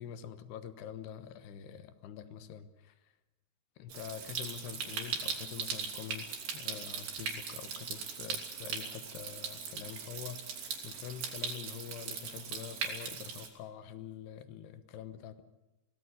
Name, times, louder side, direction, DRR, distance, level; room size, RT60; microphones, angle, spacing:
voice 1, 0.0-3.1 3.8-15.4, left 9 dB, 70° left, 11 dB, 2.8 m, -46 dB
Stream, 3.9-13.5, right 6 dB, 55° right, 4.6 m, -39 dB
23.5 x 18.0 x 8.3 m, 1.1 s
omnidirectional pair, 5.8 m